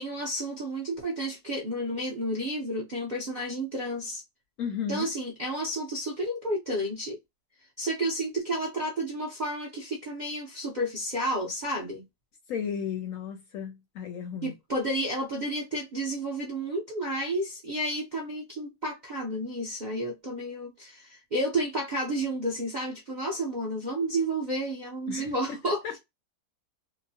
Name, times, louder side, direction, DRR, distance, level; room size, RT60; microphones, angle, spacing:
voice 1, 0.0-4.2 4.9-7.2 7.8-12.0 14.4-26.0, right 1 dB, 50° right, 0.5 m, -31 dB
voice 2, 4.6-5.1 12.5-14.5 25.1-25.6 25.8-26.0, left 7 dB, 65° left, 0.8 m, -34 dB
2.9 x 2.1 x 2.7 m
omnidirectional pair, 1.8 m